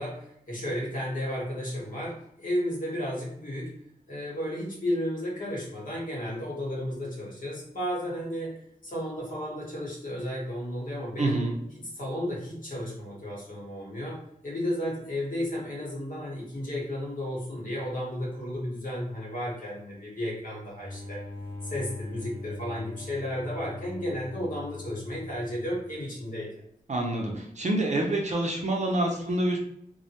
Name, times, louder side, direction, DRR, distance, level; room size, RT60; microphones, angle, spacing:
voice 1, 0.0-3.7 4.1-11.4 11.8-21.2 21.6-26.5, equal, 60° left, -5 dB, 1.1 m, -33 dB
voice 2, 11.2-11.5 26.9-29.6, right 1 dB, 50° right, 1 dB, 0.5 m, -27 dB
sound 1, 20.8-26.2, left 2 dB, 85° left, 0.9 m, -41 dB
2.2 x 2.1 x 2.8 m, 0.73 s
wide cardioid pair, 65°, 15 cm